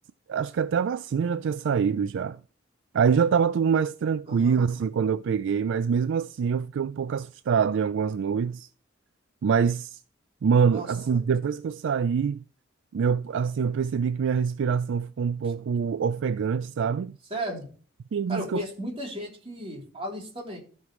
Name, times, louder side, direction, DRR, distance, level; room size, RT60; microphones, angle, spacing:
voice 1, 0.3-2.4 2.9-8.7 9.4-10.0 10.4-12.4 12.9-17.2 18.1-18.6, right 6 dB, 65° right, 0.3 m, -25 dB
voice 2, 4.3-4.6 10.6-11.2 17.3-17.7 18.3-20.6, equal, 30° right, 3.3 m, -35 dB
15.0 x 5.4 x 3.1 m
head